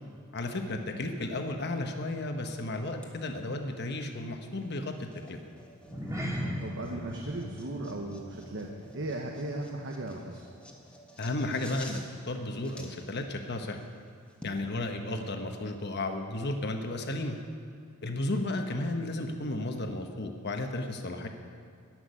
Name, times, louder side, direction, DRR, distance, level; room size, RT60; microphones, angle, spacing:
voice 1, 0.3-5.4 11.2-13.8 14.4-17.4 18.0-21.3, left 2 dB, 55° left, 5 dB, 1.1 m, -33 dB
sound 1, 3.0-14.6, left 1 dB, 5° left, 1.5 m, -53 dB
sound 2, 5.8-10.4 10.7-11.0 11.4-11.5, equal, 15° right, 1.9 m, -39 dB
voice 2, 6.6-8.7 8.9-10.4, right 2 dB, 65° right, 1 dB, 1.1 m, -37 dB
14.5 x 6.2 x 9.9 m, 2.4 s
head